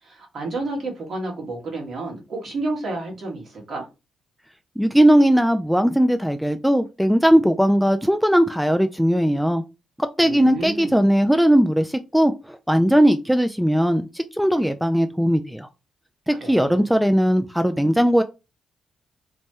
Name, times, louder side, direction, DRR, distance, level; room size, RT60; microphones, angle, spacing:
voice 1, 0.0-3.8 10.2-11.0 16.3-16.9, right 2 dB, 60° right, 1.5 m, -31 dB
voice 2, 4.8-9.6 10.0-15.7 16.3-18.2, equal, ahead, 0.3 m, -19 dB
3.1 x 2.1 x 2.9 m
hypercardioid pair, 45°, 0 cm